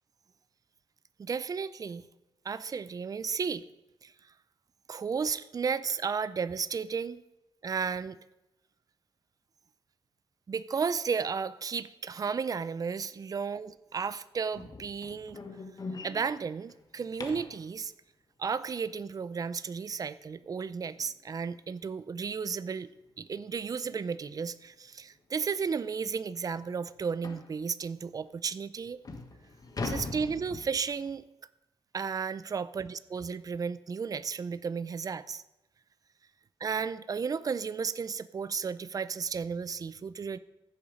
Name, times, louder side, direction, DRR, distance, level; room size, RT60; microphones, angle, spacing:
voice 1, 1.2-2.1 2.4-3.6 4.0-4.1 4.9-7.2 7.6-8.2 10.5-15.4 16.0-17.9 18.4-22.9 23.2-29.0 29.8-31.2 31.9-35.4 36.6-40.4, right 5 dB, 40° right, 16 dB, 0.5 m, -33 dB
sound 1, 14.5-17.6 20.4-20.5 21.0-21.2 21.6-21.7 22.1-22.2 23.3-23.5 23.9-24.0 24.7-24.8 25.1-25.2 25.7-25.8 27.2-27.5 28.3-28.4 28.8-31.1, left 3 dB, 40° left, 1.3 m, -41 dB
14.5 x 7.1 x 5.2 m, 0.94 s
wide cardioid pair, 125°, 10 cm